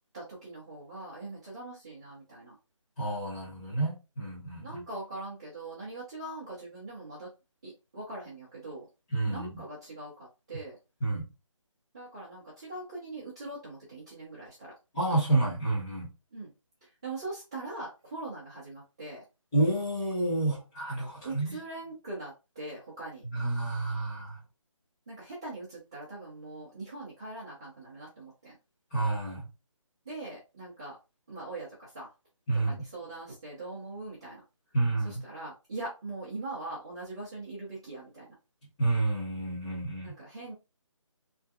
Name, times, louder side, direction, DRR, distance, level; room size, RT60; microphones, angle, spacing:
voice 1, 0.1-2.6 4.6-7.3 7.6-8.9 9.3-10.8 11.9-14.7 16.3-16.5 17.0-19.2 21.2-23.2 25.1-28.5 30.1-31.0 31.3-32.1 32.6-34.4 35.0-38.3 40.0-40.5, right 2 dB, 10° right, 0.4 m, -41 dB
voice 2, 3.0-4.8 9.1-9.5 11.0-11.3 14.9-16.1 19.5-21.6 23.3-24.4 28.9-29.4 32.5-32.8 34.7-35.2 38.8-40.2, right 2 dB, 10° left, 1.0 m, -29 dB
3.2 x 2.7 x 2.3 m
figure-of-eight pair, 165°, 17 cm